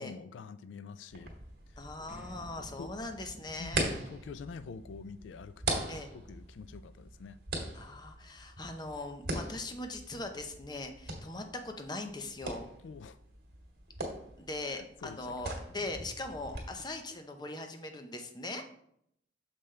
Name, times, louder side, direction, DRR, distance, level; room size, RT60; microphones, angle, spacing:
voice 1, 0.0-1.3 1.7-1.8 2.6-2.9 3.6-7.4 11.1-11.2 12.8-13.2 14.7-15.5 15.8-15.9, left 5 dB, 90° left, 14 dB, 0.3 m, -47 dB
sound 1, 1.1-16.6, right 2 dB, 60° right, 1.8 m, -41 dB
voice 2, 1.8-3.9 5.9-6.1 7.7-12.7 14.4-18.6, left 2 dB, 25° left, 5 dB, 0.7 m, -40 dB
sound 2, 2.0-13.9, equal, 10° right, 0.8 m, -56 dB
6.8 x 5.6 x 3.2 m, 0.71 s
head